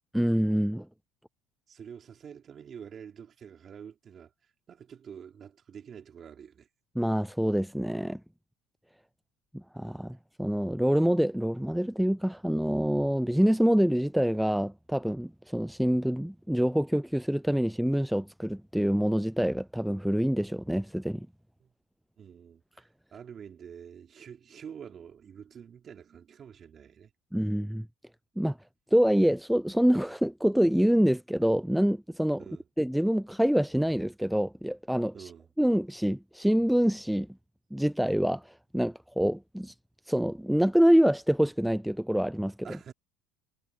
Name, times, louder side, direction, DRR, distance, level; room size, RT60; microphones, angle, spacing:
voice 1, 0.1-0.9 7.0-8.2 9.5-21.3 27.3-27.9 28.4-28.6 28.9-32.4 32.8-35.3 35.6-37.3 37.7-39.7 40.1-42.8, equal, ahead, 0.3 m, -26 dB
voice 2, 1.7-4.3 4.7-6.7 21.6-21.7 22.2-27.1 32.4-32.6 35.1-35.5 42.6-42.9, right 8 dB, 35° right, 3.6 m, -47 dB
supercardioid pair, 120°, 0 cm